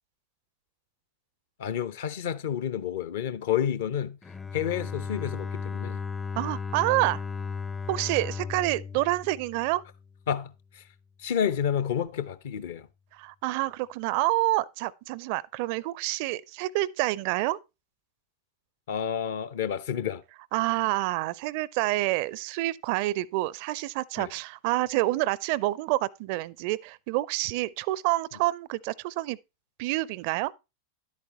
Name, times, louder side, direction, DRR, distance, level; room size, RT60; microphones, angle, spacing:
voice 1, 1.6-4.2 4.5-6.0 10.3-10.8 11.2-12.9 18.9-20.2 24.2-24.3, left 9 dB, 55° left, 0.8 m, -30 dB
Bowed string instrument, 4.2-10.1, left 5 dB, 10° left, 0.5 m, -35 dB
voice 2, 6.4-7.2 7.9-9.8 13.1-17.6 20.5-29.4 29.8-30.5, right 18 dB, 45° right, 0.4 m, -28 dB
10.5 x 8.4 x 2.9 m
figure-of-eight pair, 90°, 0 cm